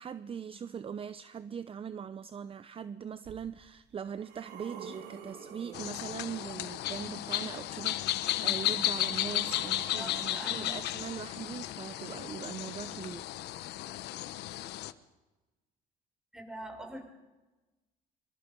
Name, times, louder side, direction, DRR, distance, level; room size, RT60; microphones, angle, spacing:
voice 1, 0.0-13.2, right 7 dB, 35° right, 14 dB, 0.7 m, -41 dB
sound 1, 3.2-3.3 3.9-6.7 7.9-11.8 12.7-12.8, right 7 dB, 90° right, 4.7 m, -49 dB
sound 2, 5.7-14.9, left 14 dB, 80° left, 1.1 m, -34 dB
voice 2, 10.0-10.9 16.3-17.0, right 1 dB, 5° right, 2 dB, 5.6 m, -44 dB
25.5 x 25.0 x 5.4 m, 1.1 s
cardioid pair, 110°, 17 cm